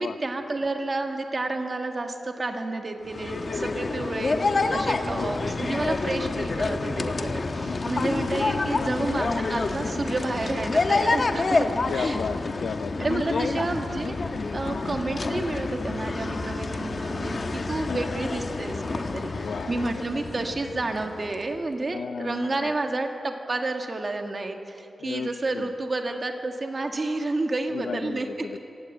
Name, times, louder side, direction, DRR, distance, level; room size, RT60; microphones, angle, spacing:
voice 1, 0.0-11.7 11.9-12.2 13.0-19.3 19.7-28.3, right 2 dB, 35° right, 4 dB, 1.8 m, -30 dB
sound 1, 3.0-21.5, left 3 dB, 40° left, 1.2 m, -28 dB
voice 2, 4.9-5.5 7.6-7.9 8.8-9.1 11.9-13.6 14.7-14.9 17.9-18.0 19.3-19.9 21.9-22.7 25.0-25.7 27.7-28.6, left 6 dB, 85° left, 11 dB, 0.7 m, -34 dB
26.0 x 17.0 x 7.9 m, 2.7 s
wide cardioid pair, 150°, 0 cm